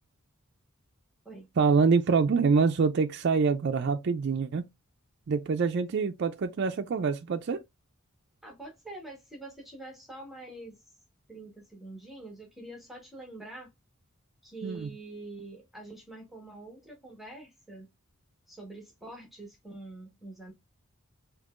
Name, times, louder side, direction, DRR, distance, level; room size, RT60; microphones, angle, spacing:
voice 1, 1.6-4.7 5.3-7.6 14.6-14.9, right 5 dB, 55° right, 0.4 m, -25 dB
voice 2, 8.4-10.8 11.3-13.7 14.4-17.9 18.5-20.5, right 2 dB, ahead, 1.2 m, -45 dB
5.3 x 2.8 x 2.4 m
head